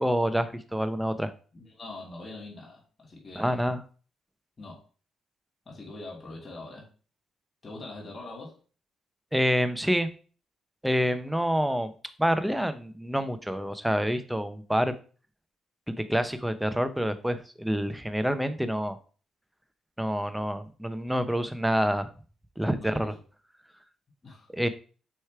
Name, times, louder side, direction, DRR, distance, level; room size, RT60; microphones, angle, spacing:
voice 1, 0.0-1.3 3.4-3.8 9.3-10.1 10.8-11.9 12.2-14.9 15.9-19.0 20.0-22.1 22.6-23.1 24.5-24.7, equal, 5° right, 11 dB, 0.7 m, -27 dB
voice 2, 1.5-3.6 4.6-4.8 5.7-6.9 7.6-8.6 22.6-23.1 24.2-24.5, left 2 dB, 35° left, -2 dB, 2.9 m, -43 dB
6.5 x 3.2 x 4.7 m, 0.38 s
cardioid pair, 90°, 0 cm